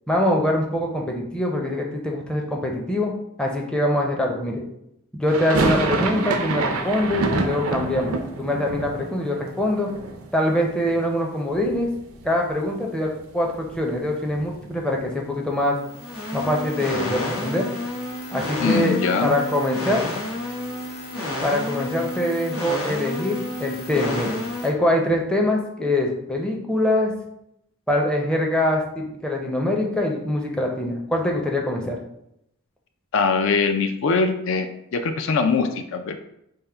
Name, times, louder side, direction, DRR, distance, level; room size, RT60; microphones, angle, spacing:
voice 1, 0.1-3.1 3.4-4.6 5.2-9.9 10.3-11.9 12.2-15.8 16.3-17.7 18.3-19.0 19.2-20.0 21.4-27.1 27.9-32.0, left 1 dB, 5° left, 0 dB, 0.5 m, -24 dB
sound 1, 5.3-11.2 11.5-12.3 12.6-12.7 13.0-15.1, right 3 dB, 80° right, 0.5 m, -28 dB
sound 2, 15.8-24.7, left 1 dB, 90° left, 1.1 m, -30 dB
voice 2, 18.6-19.4 33.1-36.2, left 4 dB, 65° left, 7 dB, 0.4 m, -22 dB
3.4 x 2.1 x 4.3 m, 0.78 s
head